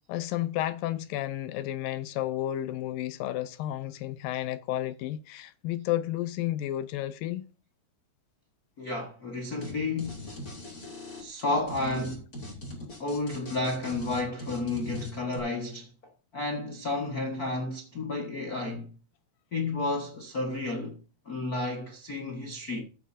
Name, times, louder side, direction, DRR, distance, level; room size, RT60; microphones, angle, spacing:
voice 1, 0.1-7.5, left 13 dB, 80° left, 2.2 m, -32 dB
voice 2, 8.8-10.2 11.2-12.3 13.0-15.9 16.3-18.9 19.5-21.0 21.2-22.8, left 2 dB, 60° left, 0.9 m, -31 dB
sound 1, 9.6-9.7 10.0-15.4, left 1 dB, 25° left, 3.9 m, -40 dB
14.5 x 8.7 x 2.7 m
omnidirectional pair, 4.4 m